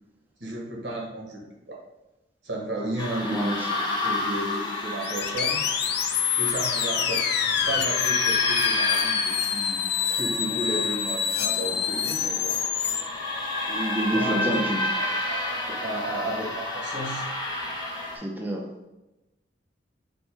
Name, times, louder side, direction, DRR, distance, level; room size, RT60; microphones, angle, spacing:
voice 1, 0.4-1.8 2.4-5.6 6.4-7.2 7.6-12.6 14.1-14.6 14.9-17.3, right 1 dB, 65° right, -2 dB, 1.2 m, -33 dB
sound 1, 3.0-18.2, left 2 dB, 25° left, 1.1 m, -30 dB
voice 2, 3.2-3.7 13.7-14.8 18.1-18.6, right 1 dB, 10° right, -1 dB, 0.4 m, -28 dB
sound 2, 5.0-13.0, left 8 dB, 60° left, 0.4 m, -26 dB
5.1 x 2.1 x 4.6 m, 1.0 s
head